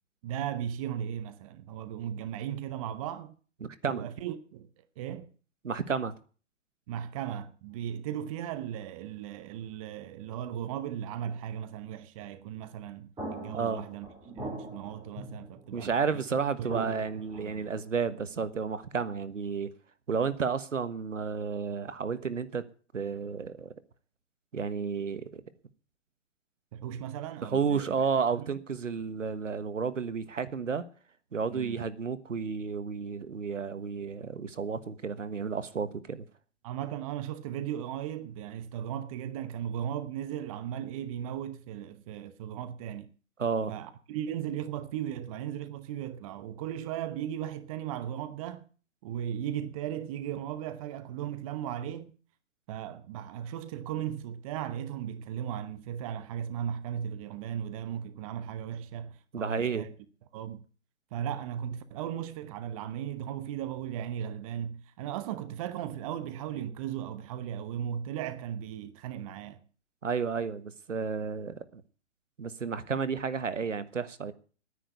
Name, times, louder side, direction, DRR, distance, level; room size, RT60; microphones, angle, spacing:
voice 1, 0.2-3.3 3.9-5.3 6.9-14.1 14.4-15.9 16.6-17.0 17.3-17.6 26.7-27.8 28.3-28.5 31.5-31.8 36.6-43.1 43.7-48.7 49.0-52.1 52.7-59.9 60.3-60.6 61.1-69.6, right 10 dB, 30° right, 0.9 m, -37 dB
voice 2, 3.6-4.1 5.6-6.1 13.5-13.8 15.7-19.7 20.1-22.6 22.9-23.7 24.5-25.4 27.4-30.8 31.3-36.3 43.4-43.7 59.3-59.9 70.0-71.8 72.4-74.3, right 5 dB, 80° right, 1.4 m, -32 dB
sound 1, 13.2-16.1 16.7-18.0, right 2 dB, 10° right, 4.4 m, -42 dB
10.0 x 10.0 x 8.2 m
hypercardioid pair, 135°, 37 cm